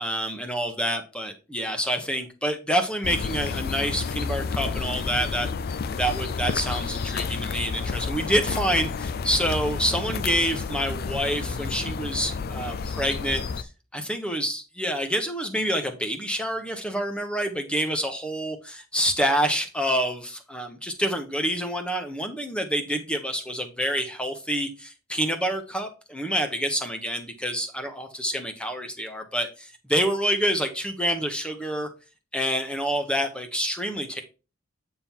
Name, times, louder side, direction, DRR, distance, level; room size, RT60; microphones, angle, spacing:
voice 1, 0.0-5.5 5.9-31.9 32.3-34.2, equal, 5° left, 6 dB, 1.1 m, -27 dB
sound 1, 3.0-13.6, left 5 dB, 50° left, 0.4 m, -30 dB
8.7 x 3.8 x 4.5 m, 0.31 s
head